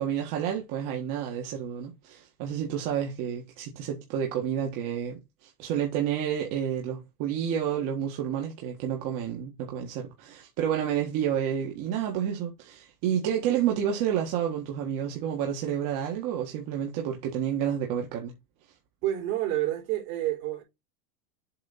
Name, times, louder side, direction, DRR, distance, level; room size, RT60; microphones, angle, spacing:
voice 1, 0.0-18.3, right 9 dB, 45° right, 1.7 m, -30 dB
voice 2, 19.0-20.6, right 14 dB, 65° right, 4.0 m, -29 dB
7.6 x 3.8 x 4.3 m
supercardioid pair, 150°, 47 cm